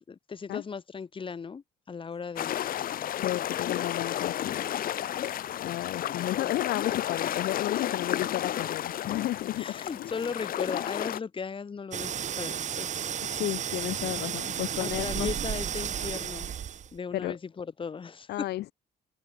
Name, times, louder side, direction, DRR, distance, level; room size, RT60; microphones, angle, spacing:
voice 1, 0.1-2.5 6.4-6.5 9.6-13.2 14.8-16.5 16.9-18.5, left 5 dB, 30° left, 3.7 m, -37 dB
sound 1, 2.4-11.2, left 11 dB, 60° left, 2.4 m, -32 dB
voice 2, 3.2-4.7 5.6-10.1 13.2-15.3 17.1-17.4 18.3-18.7, left 15 dB, 75° left, 2.1 m, -33 dB
sound 2, 11.9-17.0, right 8 dB, 45° right, 1.9 m, -33 dB
open air
cardioid pair, 110°, 17 cm